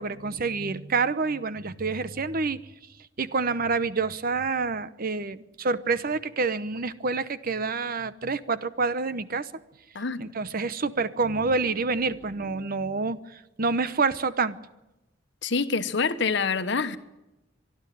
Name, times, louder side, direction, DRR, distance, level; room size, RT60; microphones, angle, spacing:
voice 1, 0.0-2.6 3.2-9.5 10.2-14.6, right 4 dB, 50° right, 15 dB, 0.9 m, -27 dB
voice 2, 15.4-17.0, left 4 dB, 70° left, 11 dB, 1.2 m, -26 dB
24.5 x 11.5 x 9.3 m, 0.98 s
head